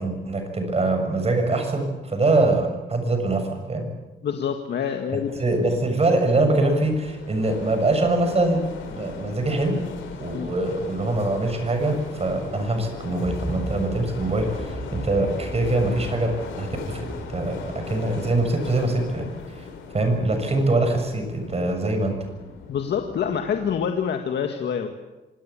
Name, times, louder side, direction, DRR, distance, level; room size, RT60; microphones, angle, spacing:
voice 1, 0.0-3.9 5.4-8.6 8.9-9.8 10.2-17.5 17.9-22.1, right 2 dB, 30° right, 6 dB, 7.0 m, -23 dB
voice 2, 4.2-5.3 10.3-10.5 22.7-24.9, left 7 dB, 60° left, 5 dB, 1.9 m, -26 dB
sound 1, 5.1-23.9, left 6 dB, 85° left, 4.9 m, -39 dB
sound 2, 13.2-19.0, right 2 dB, 15° right, 2.1 m, -37 dB
26.0 x 18.0 x 8.6 m, 1.1 s
cardioid pair, 90°, 20 cm